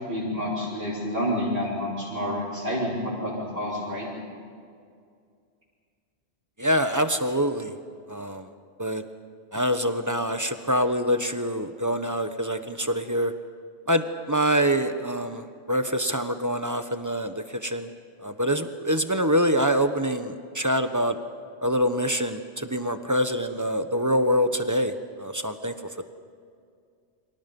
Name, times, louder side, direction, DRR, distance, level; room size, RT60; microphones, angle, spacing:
voice 1, 0.1-4.1, equal, 60° right, -9 dB, 6.3 m, -29 dB
voice 2, 6.6-7.7 8.1-8.5 8.8-9.0 9.5-13.3 13.9-17.9 18.2-21.2 21.6-26.0, equal, 15° right, 8 dB, 1.1 m, -25 dB
30.0 x 25.0 x 5.5 m, 2.2 s
omnidirectional pair, 1.2 m